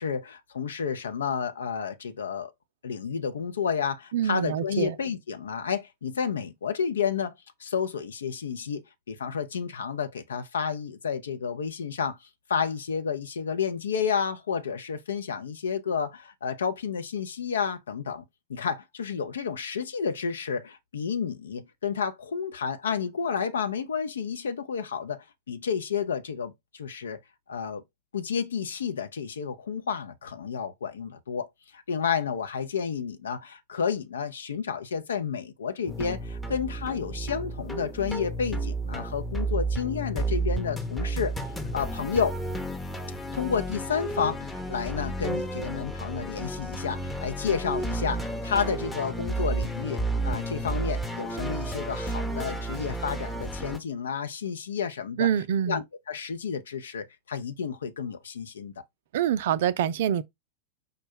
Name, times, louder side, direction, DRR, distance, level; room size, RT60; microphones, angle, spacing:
voice 1, 0.0-2.5 2.8-7.3 7.6-18.2 18.5-27.2 27.5-27.8 28.1-31.5 31.7-41.3 41.7-42.4 43.3-55.3 55.7-58.8, left 6 dB, 65° left, 0.6 m, -31 dB
voice 2, 4.1-4.9 55.2-55.8 59.1-60.2, right 9 dB, 55° right, 0.4 m, -25 dB
sound 1, 35.9-53.8, right 2 dB, 5° left, 0.8 m, -32 dB
5.1 x 2.2 x 4.3 m
figure-of-eight pair, 90°, 0 cm